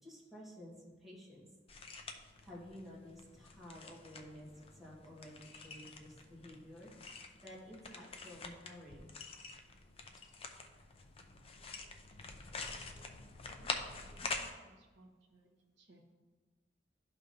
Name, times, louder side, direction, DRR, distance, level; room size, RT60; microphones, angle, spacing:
voice 1, 0.0-1.5 2.4-9.1, left 1 dB, ahead, -7 dB, 1.7 m, -52 dB
sound 1, 1.7-14.5, left 4 dB, 30° left, 0.5 m, -47 dB
voice 2, 13.4-16.1, right 1 dB, 70° right, 1 dB, 1.2 m, -63 dB
12.0 x 5.1 x 2.7 m, 1.3 s
head